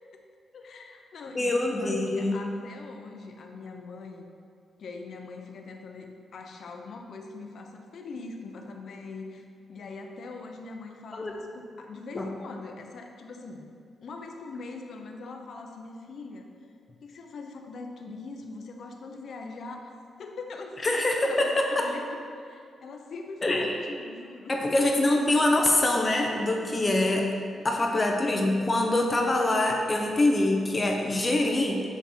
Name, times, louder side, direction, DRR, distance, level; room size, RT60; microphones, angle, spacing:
voice 1, 0.5-4.3 4.8-9.4 9.7-13.7 14.0-16.5 17.0-19.9 20.2-24.8 27.5-28.2, left 3 dB, 55° left, 3 dB, 0.7 m, -42 dB
voice 2, 1.3-2.4 11.1-11.3 12.2-12.3 20.8-21.9 23.4-23.9 24.5-27.3 27.6-31.8, left 2 dB, 20° left, 1 dB, 0.6 m, -24 dB
7.2 x 6.0 x 4.3 m, 2.3 s
wide cardioid pair, 175°, 0 cm